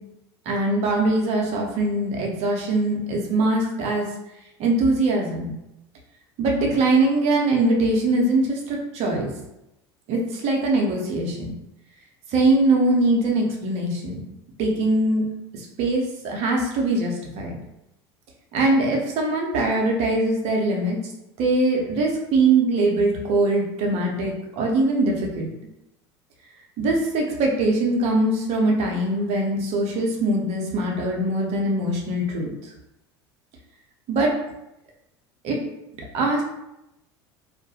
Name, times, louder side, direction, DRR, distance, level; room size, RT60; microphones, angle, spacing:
voice 1, 0.5-4.1 4.6-5.5 6.4-9.3 10.1-11.5 12.3-14.2 14.6-15.3 15.5-17.6 18.5-21.0 21.4-25.5 26.8-32.5 34.1-34.3 35.4-35.6 36.1-36.4, right 2 dB, 50° right, -1 dB, 0.7 m, -22 dB
2.4 x 2.2 x 2.7 m, 0.89 s
hypercardioid pair, 75°, 14 cm